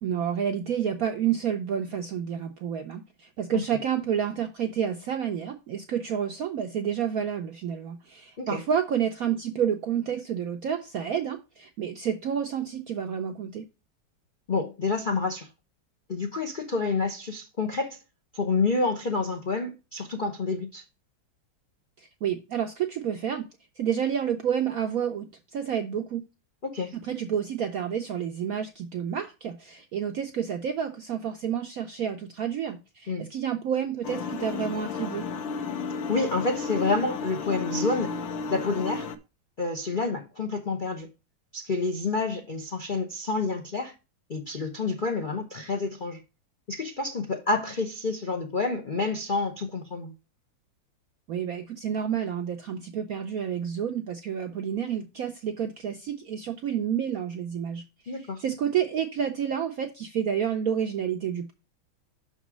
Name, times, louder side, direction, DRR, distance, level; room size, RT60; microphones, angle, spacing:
voice 1, 0.0-13.7 22.0-23.5 23.8-25.3 25.5-26.2 26.9-35.3 51.3-57.8 58.2-61.5, right 8 dB, 75° right, 0.8 m, -29 dB
voice 2, 14.5-15.5 16.1-18.0 18.3-20.8 26.6-27.0 33.1-33.3 36.1-38.2 38.5-39.1 39.6-41.1 41.5-43.9 44.3-46.2 46.7-50.1 58.1-58.4, left 3 dB, 85° left, 0.4 m, -28 dB
sound 1, 34.0-39.2, left 4 dB, 70° left, 1.4 m, -33 dB
6.1 x 4.2 x 6.0 m
omnidirectional pair, 2.2 m